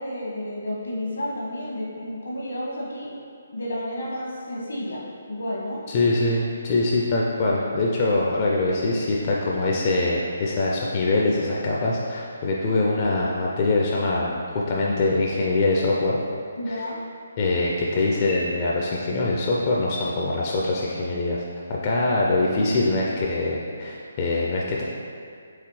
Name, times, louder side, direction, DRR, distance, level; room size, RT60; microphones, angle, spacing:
voice 1, 0.0-3.1 3.5-5.8 16.6-17.0, left 1 dB, 75° left, -4 dB, 1.2 m, -31 dB
voice 2, 5.9-16.2 16.7-16.8 17.4-21.4 21.7-24.8, left 2 dB, 35° left, -4 dB, 0.4 m, -23 dB
4.7 x 3.3 x 3.1 m, 2.3 s
figure-of-eight pair, 145°, 0 cm